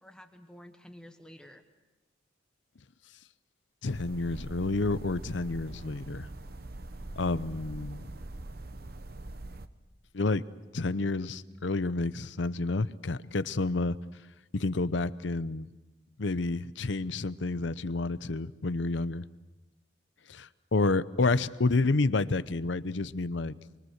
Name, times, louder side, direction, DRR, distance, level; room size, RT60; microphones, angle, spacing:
voice 1, 0.0-1.6 6.9-7.3, equal, 5° left, 5 dB, 1.1 m, -51 dB
voice 2, 3.8-6.3 7.2-8.1 10.1-10.4 10.7-14.0 14.5-15.7 16.2-19.2 20.3-23.5, left 3 dB, 70° left, 15 dB, 0.7 m, -29 dB
sound 1, 3.9-9.7, right 2 dB, 50° right, 0.9 m, -43 dB
25.0 x 24.5 x 6.5 m, 1.1 s
head